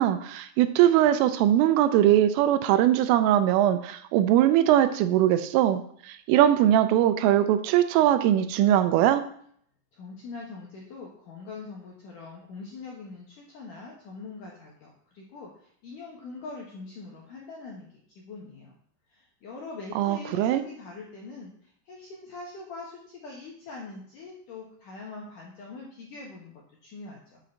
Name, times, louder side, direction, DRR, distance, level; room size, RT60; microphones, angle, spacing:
voice 1, 0.0-5.8 6.1-9.2 20.0-20.6, right 12 dB, 85° right, 10 dB, 3.2 m, -21 dB
voice 2, 9.9-17.9 18.2-18.8 19.1-27.4, left 3 dB, 70° left, -2 dB, 2.0 m, -43 dB
8.0 x 6.2 x 7.1 m, 0.62 s
omnidirectional pair, 5.9 m